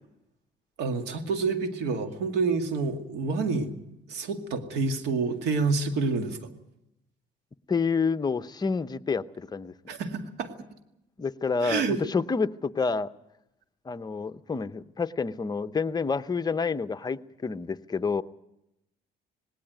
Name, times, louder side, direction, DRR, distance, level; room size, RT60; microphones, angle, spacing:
voice 1, 0.8-3.7 4.1-6.5 9.9-10.7 11.6-12.0, right 4 dB, 85° right, 6 dB, 2.3 m, -28 dB
voice 2, 7.7-9.7 11.2-13.1 13.8-18.2, left 5 dB, 25° left, 11 dB, 0.8 m, -28 dB
18.5 x 18.0 x 9.3 m, 0.86 s
cardioid pair, 95°, 17 cm